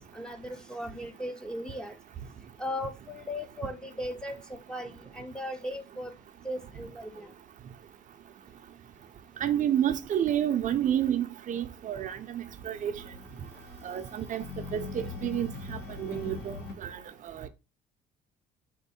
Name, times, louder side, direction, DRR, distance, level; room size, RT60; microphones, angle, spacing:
voice 1, 0.0-2.0 2.6-6.1 6.4-7.3, left 1 dB, 5° left, 0.6 m, -37 dB
voice 2, 9.4-12.9 13.8-14.4 14.7-16.6 16.8-17.0 17.2-17.5, right 10 dB, 50° right, 0.6 m, -30 dB
sound 1, 11.9-16.7, left 3 dB, 85° left, 1.5 m, -42 dB
4.5 x 2.5 x 4.1 m
cardioid pair, 110°, 17 cm